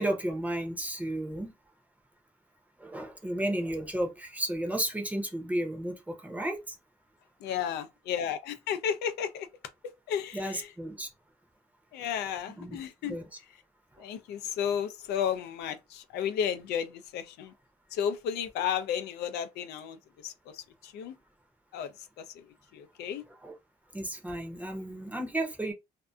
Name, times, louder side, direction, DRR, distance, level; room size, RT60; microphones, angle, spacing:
voice 1, 0.0-1.5 2.8-6.7 10.3-11.1 12.6-12.8 13.1-13.2 23.4-23.5 23.9-25.7, right 1 dB, 10° right, 0.7 m, -33 dB
voice 2, 7.4-9.5 10.1-10.7 11.9-13.2 14.0-17.5 17.9-21.1 21.7-21.9 22.2-22.5 22.7-23.2, left 8 dB, 75° left, 0.4 m, -33 dB
2.6 x 2.4 x 2.2 m
cardioid pair, 110°, 17 cm